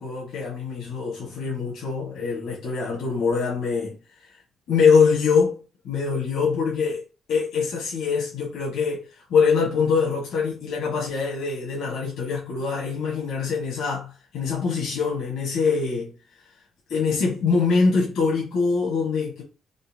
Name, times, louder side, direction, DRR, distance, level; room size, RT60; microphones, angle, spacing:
voice 1, 0.0-4.0 4.7-5.6 5.8-7.0 7.3-16.1 16.9-19.4, left 5 dB, 80° left, 1.1 m, -23 dB
3.8 x 2.2 x 2.6 m
cardioid pair, 90°, 0 cm